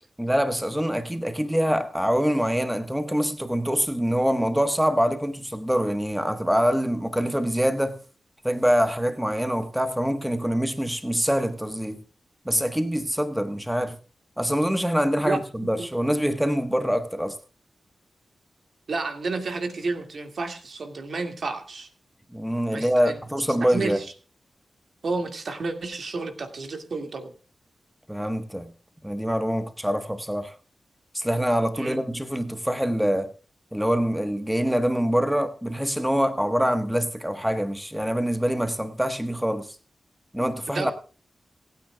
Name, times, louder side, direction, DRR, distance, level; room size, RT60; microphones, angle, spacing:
voice 1, 0.2-8.0 8.4-12.0 12.4-14.0 14.4-17.4 22.3-24.0 28.1-28.7 29.0-30.6 31.1-33.3 33.7-39.8 40.3-40.9, equal, 5° right, 1.3 m, -25 dB
voice 2, 15.2-15.9 18.9-21.9 22.7-23.1 23.7-24.0 25.0-27.3 31.8-32.0 40.7-40.9, right 3 dB, 65° right, 2.2 m, -31 dB
27.0 x 9.3 x 2.3 m
cardioid pair, 60°, 0 cm